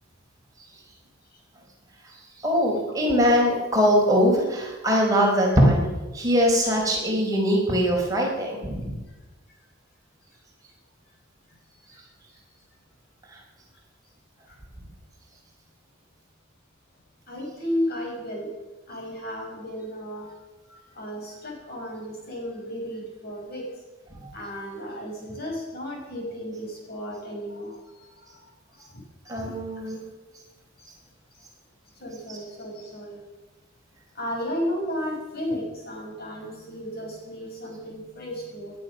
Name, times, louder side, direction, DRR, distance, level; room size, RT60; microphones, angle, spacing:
voice 1, 2.4-5.8 6.1-8.9 24.2-24.3 29.3-30.0, equal, 20° right, -2 dB, 4.5 m, -21 dB
voice 2, 17.3-18.6 18.9-20.3 20.7-23.7 24.3-27.8 28.9-29.0 29.4-29.9 32.0-33.2 34.1-38.7, equal, 50° left, 0 dB, 5.7 m, -33 dB
19.5 x 11.5 x 6.5 m, 1.1 s
head